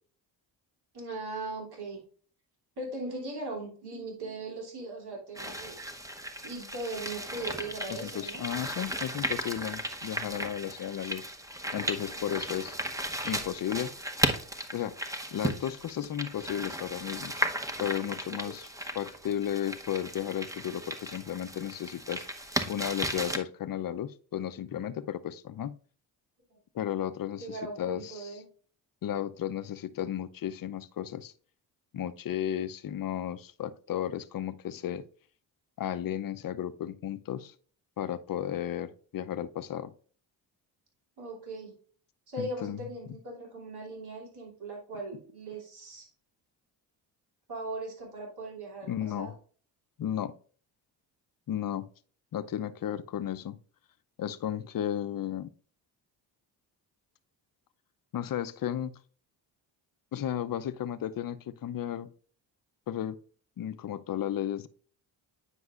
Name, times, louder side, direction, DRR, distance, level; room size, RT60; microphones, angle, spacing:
voice 1, 0.9-2.0 2.8-5.8 6.4-8.4 12.1-12.2 18.4-18.6 26.5-26.6 27.4-28.4 41.2-41.7 42.3-46.1 47.5-49.3, right 2 dB, 55° right, 2.9 m, -39 dB
sound 1, 5.4-23.4, right 1 dB, 5° right, 0.9 m, -35 dB
voice 2, 7.9-11.3 11.7-12.8 13.2-13.9 14.7-17.4 17.8-18.7 18.9-22.2 22.7-25.8 26.7-28.3 29.0-31.3 31.9-35.0 35.8-37.5 38.0-39.9 42.4-42.8 48.8-49.3 50.0-50.3 51.5-51.9 52.3-53.6 54.2-55.5 58.1-59.0 60.1-62.1 62.9-63.2 63.6-64.7, left 10 dB, 50° left, 0.6 m, -34 dB
9.6 x 5.3 x 2.4 m
supercardioid pair, 65°, 45 cm